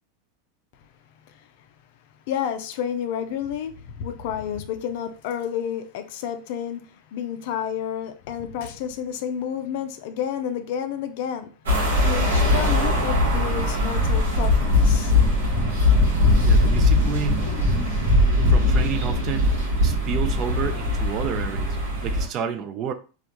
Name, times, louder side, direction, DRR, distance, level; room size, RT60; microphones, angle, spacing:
voice 1, 2.3-11.5 12.0-15.2, left 9 dB, 65° left, 0.4 m, -30 dB
sound 1, 11.7-22.3, left 2 dB, 85° right, 1.0 m, -20 dB
voice 2, 16.4-17.5 18.5-19.5 19.8-21.8 22.0-22.9, right 8 dB, 45° right, 0.4 m, -30 dB
2.3 x 2.2 x 2.8 m
hypercardioid pair, 100°, 0 cm